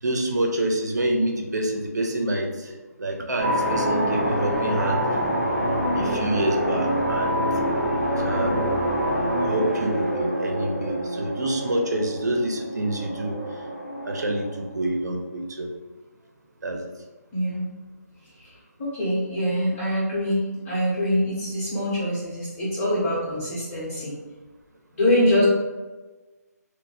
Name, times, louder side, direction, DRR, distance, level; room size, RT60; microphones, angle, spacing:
voice 1, 0.0-5.0 5.9-7.4 8.2-8.6 9.4-13.6 14.0-15.7 16.6-16.9, right 1 dB, 75° right, 2 dB, 0.7 m, -27 dB
sound 1, 3.4-14.8, equal, 5° left, 1.2 m, -26 dB
voice 2, 17.3-17.7 18.4-18.5 18.8-24.2 24.9-25.4, equal, 30° left, -9 dB, 1.3 m, -24 dB
3.9 x 2.3 x 2.6 m, 1.2 s
figure-of-eight pair, 160°, 9 cm